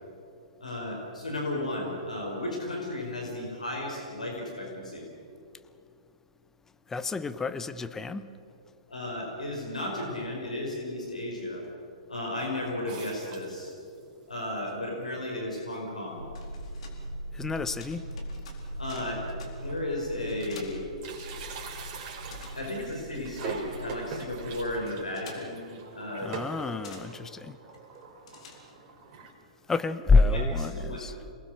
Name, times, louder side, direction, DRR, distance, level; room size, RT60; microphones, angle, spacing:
voice 1, 0.6-5.1 8.9-11.6 12.1-13.7 14.3-16.2 18.8-19.2 19.6-20.8 22.5-26.3 26.9-27.0 30.2-31.2, left 1 dB, 85° left, 0 dB, 4.9 m, -34 dB
voice 2, 6.9-8.3 17.3-18.0 26.2-27.6 29.7-31.1, left 3 dB, 10° left, 12 dB, 0.9 m, -27 dB
sound 1, 12.9-14.0 14.6-14.7 14.9-15.0 15.8-15.9 16.3-16.5 16.9-17.0 18.2-18.3 19.0-19.1 19.4-20.7 20.9-29.3, right 5 dB, 35° right, 3.7 m, -43 dB
sound 2, 16.1-21.7 22.0-29.0, left 5 dB, 60° left, 4.2 m, -51 dB
sound 3, 16.2-24.8, equal, 85° right, 3.8 m, -41 dB
27.5 x 19.5 x 6.4 m, 2.5 s
figure-of-eight pair, 115°, 4 cm